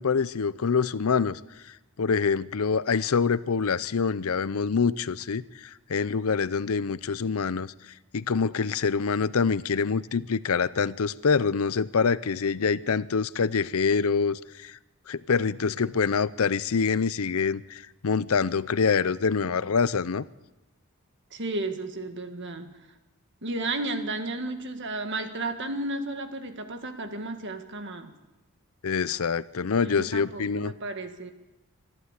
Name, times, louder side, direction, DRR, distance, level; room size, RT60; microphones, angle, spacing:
voice 1, 0.0-1.4 2.0-7.7 8.1-14.8 15.1-20.2 28.8-30.7, left 5 dB, 70° left, 18 dB, 0.6 m, -25 dB
voice 2, 21.3-22.8 23.4-28.1 29.8-31.3, right 2 dB, 55° right, 7 dB, 1.8 m, -33 dB
26.0 x 12.0 x 8.2 m, 1.0 s
head